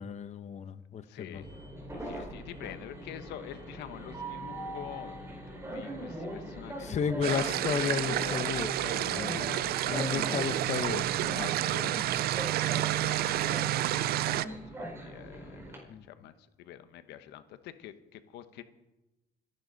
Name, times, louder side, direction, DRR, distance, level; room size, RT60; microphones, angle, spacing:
voice 1, 0.0-1.4 6.8-8.7 9.0-12.1 13.0-13.1 15.9-16.1, left 7 dB, 45° left, 11 dB, 1.0 m, -34 dB
voice 2, 1.0-1.5 1.9-5.2 5.5-8.5 8.8-9.6 10.1-10.2 11.3-18.6, left 11 dB, 85° left, 11 dB, 1.2 m, -46 dB
Train, 1.3-15.8, right 1 dB, 15° right, 5.0 m, -41 dB
sound 1, 7.2-14.5, right 14 dB, 65° right, 0.5 m, -30 dB
26.0 x 11.0 x 4.1 m, 1.0 s
cardioid pair, 110°, 17 cm